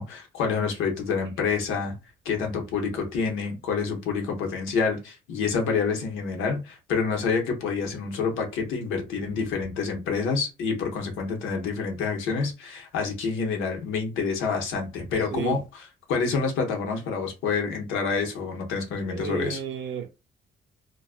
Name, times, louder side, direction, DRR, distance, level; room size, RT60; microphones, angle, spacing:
voice 1, 0.0-1.9 2.2-15.8 16.1-19.6, left 5 dB, 90° left, 0.8 m, -28 dB
voice 2, 19.1-20.1, right 7 dB, 70° right, 0.7 m, -32 dB
2.3 x 2.2 x 2.4 m
cardioid pair, 90°, 20 cm